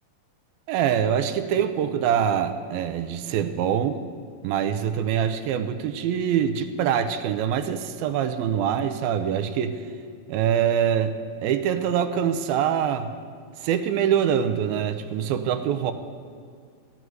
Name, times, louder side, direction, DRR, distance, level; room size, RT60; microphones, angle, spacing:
voice 1, 0.7-4.0 4.4-9.8 10.3-11.1 11.4-13.1 13.6-15.9, right 9 dB, 90° right, 9 dB, 2.5 m, -24 dB
15.0 x 9.4 x 6.2 m, 2.2 s
omnidirectional pair, 4.3 m